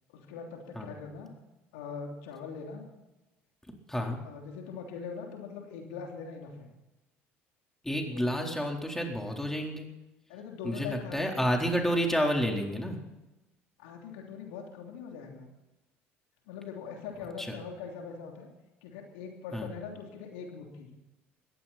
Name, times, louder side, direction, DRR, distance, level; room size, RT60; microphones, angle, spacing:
voice 1, 0.1-1.3 1.7-2.8 4.2-6.7 8.1-8.6 10.3-11.7 13.8-15.5 16.5-18.5 18.8-20.9, left 6 dB, 75° left, 2 dB, 3.1 m, -42 dB
voice 2, 3.9-4.2 7.8-9.9 10.6-13.0 17.4-17.5 19.5-19.7, equal, 5° left, 1 dB, 4.1 m, -30 dB
20.5 x 15.5 x 4.4 m, 1.0 s
hypercardioid pair, 65°, 6 cm